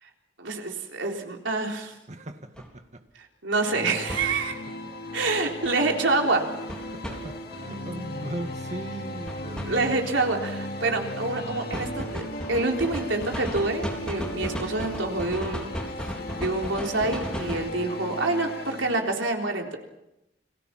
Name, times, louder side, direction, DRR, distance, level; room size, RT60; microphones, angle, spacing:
voice 1, 0.4-1.9 3.4-4.6 5.1-6.5 9.6-12.2 12.5-15.7 16.4-19.8, right 3 dB, 85° right, 2 dB, 3.8 m, -27 dB
voice 2, 2.1-3.1 4.5-4.6 6.9-10.1, right 1 dB, 40° right, 7 dB, 1.9 m, -38 dB
sound 1, 2.6-2.7 4.1-4.3 6.7-7.2 9.3-9.7 11.7-17.7, equal, 5° left, 3.7 m, -34 dB
sound 2, 3.7-19.0, left 1 dB, 55° left, 2.6 m, -37 dB
Siren, 6.2-16.6, left 1 dB, 30° left, 5.7 m, -51 dB
29.5 x 21.0 x 5.9 m, 0.89 s
head